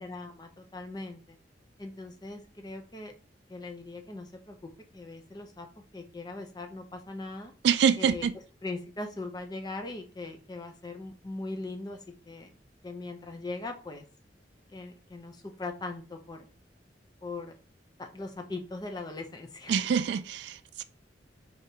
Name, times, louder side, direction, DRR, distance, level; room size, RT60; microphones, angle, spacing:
voice 1, 0.0-1.4 1.8-3.1 3.5-5.7 5.9-7.5 8.0-8.3 8.6-12.0 12.3-12.5 12.8-14.1 14.7-16.5 17.2-17.6 18.0-19.7, left 2 dB, 20° left, 0.5 m, -40 dB
voice 2, 7.6-8.4 19.7-20.8, right 7 dB, 70° right, 0.3 m, -26 dB
5.0 x 2.8 x 2.7 m
head